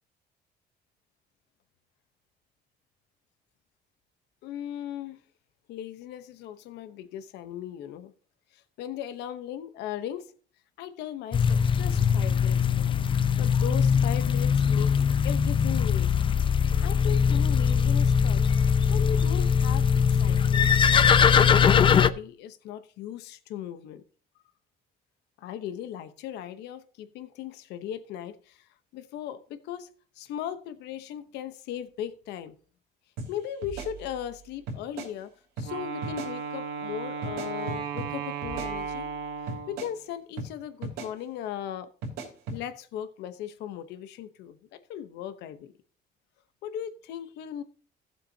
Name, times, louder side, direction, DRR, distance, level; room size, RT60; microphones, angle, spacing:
voice 1, 4.4-5.2 5.7-8.1 8.5-10.3 10.8-13.0 13.4-16.1 16.8-18.5 18.9-24.0 25.4-28.7 28.9-29.9 30.2-32.6 33.3-35.3 35.6-39.1 39.7-41.9 42.5-45.7 46.6-47.6, left 10 dB, 85° left, 0.9 m, -38 dB
sound 1, 11.3-22.1, left 7 dB, 30° left, 0.5 m, -21 dB
sound 2, 33.2-33.3 33.6-34.4 34.7-35.1 35.6-35.7 36.0-36.3 37.2-38.1 38.4-39.1 39.5-39.9 40.4-40.5 40.8-41.1 42.0-42.6, right 3 dB, 90° right, 3.2 m, -37 dB
Wind instrument woodwind instrument, 35.6-40.0, right 6 dB, 70° right, 1.5 m, -35 dB
15.0 x 7.4 x 2.7 m
cardioid pair, 110°, 17 cm